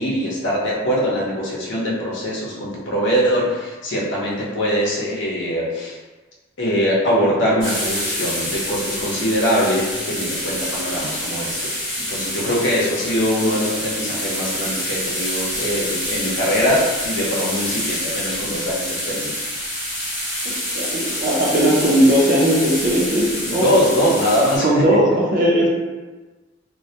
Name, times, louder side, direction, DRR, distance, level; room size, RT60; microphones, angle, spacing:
voice 1, 0.0-6.0 6.6-11.6 12.1-19.3 23.4-24.8 25.6-25.7, equal, 70° left, -4 dB, 0.6 m, -22 dB
sound 1, 7.6-24.6, equal, 5° left, 0.6 m, -27 dB
voice 2, 20.4-23.7 24.6-25.7, equal, 45° right, -3 dB, 0.4 m, -18 dB
2.1 x 2.1 x 2.7 m, 1.3 s
head